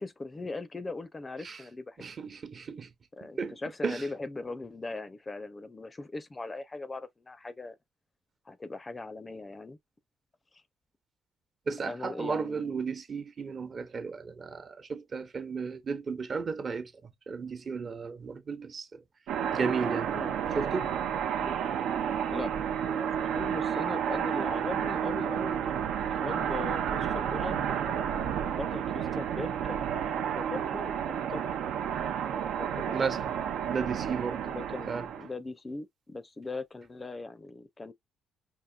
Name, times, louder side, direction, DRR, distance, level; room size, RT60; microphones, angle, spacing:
voice 1, 0.0-2.0 3.2-7.8 8.5-9.8 10.5-10.6 11.8-12.8 20.1-20.4 21.4-21.6 22.3-22.5 22.8-31.6 32.6-33.2 34.4-37.9, left 3 dB, 25° left, 0.5 m, -40 dB
voice 2, 2.0-2.9 3.2-4.0 11.7-19.0 19.5-20.2 20.5-21.1 32.8-33.3 33.7-34.5 34.9-35.1, right 5 dB, 45° right, 0.8 m, -34 dB
sound 1, 19.3-35.3, right 8 dB, 85° right, 0.6 m, -31 dB
5.5 x 2.6 x 2.3 m
cardioid pair, 90°, 0 cm